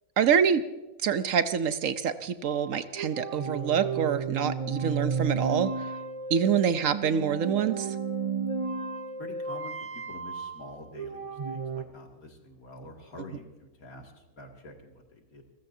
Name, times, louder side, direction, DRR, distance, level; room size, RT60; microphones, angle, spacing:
voice 1, 0.2-0.6 1.0-5.7 6.3-7.9, right 7 dB, 65° right, 12 dB, 1.0 m, -26 dB
sound 1, 2.5-11.8, right 5 dB, 50° right, 0.4 m, -33 dB
voice 2, 9.2-15.4, left 2 dB, 75° left, 2 dB, 2.8 m, -47 dB
29.0 x 14.5 x 2.7 m, 1.1 s
omnidirectional pair, 1.6 m